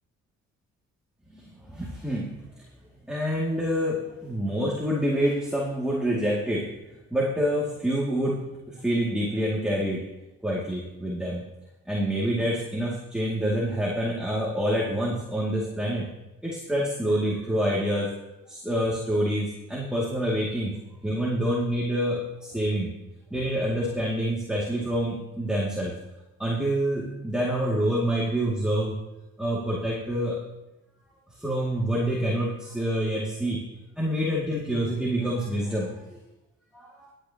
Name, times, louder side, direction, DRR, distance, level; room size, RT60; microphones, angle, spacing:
voice 1, 1.3-2.3 3.1-6.8 7.1-10.1 10.4-11.4 11.9-16.1 16.4-18.1 18.5-20.8 21.0-22.9 23.3-26.0 26.4-29.0 29.4-30.4 31.4-33.6 34.0-36.2 36.7-37.1, equal, 5° right, -5 dB, 2.4 m, -27 dB
22.0 x 8.9 x 2.9 m, 0.99 s
cardioid pair, 90°, 30 cm